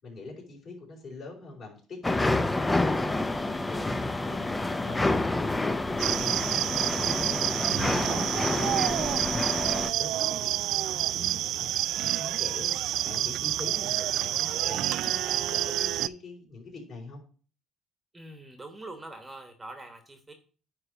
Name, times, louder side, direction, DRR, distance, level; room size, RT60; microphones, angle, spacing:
voice 1, 0.0-5.2 5.6-17.2, left 3 dB, 45° left, -2 dB, 4.5 m, -44 dB
sound 1, 2.0-9.9, left 2 dB, 15° left, 0.5 m, -28 dB
sound 2, 6.0-16.1, right 13 dB, 65° right, 0.3 m, -28 dB
voice 2, 18.1-20.3, right 2 dB, 15° right, 6 dB, 1.1 m, -44 dB
9.7 x 3.2 x 6.7 m, 0.40 s
cardioid pair, 115°, 0 cm